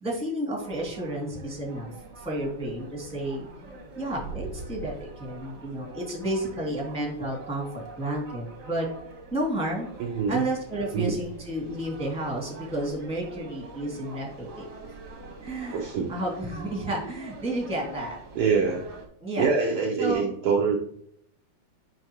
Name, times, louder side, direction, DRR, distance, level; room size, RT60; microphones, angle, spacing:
voice 1, 0.0-1.9 2.2-3.5 4.0-8.9 9.3-9.9 10.3-14.7 15.4-18.2 19.2-19.5 20.0-20.3, right 1 dB, ahead, -2 dB, 2.0 m, -31 dB
sound 1, 0.6-19.1, right 3 dB, 45° right, 1.6 m, -44 dB
voice 2, 10.0-10.4 10.9-11.1 15.7-16.1 18.3-18.9 19.4-20.8, right 5 dB, 75° right, 3 dB, 1.3 m, -25 dB
8.9 x 5.7 x 3.0 m, 0.68 s
omnidirectional pair, 3.5 m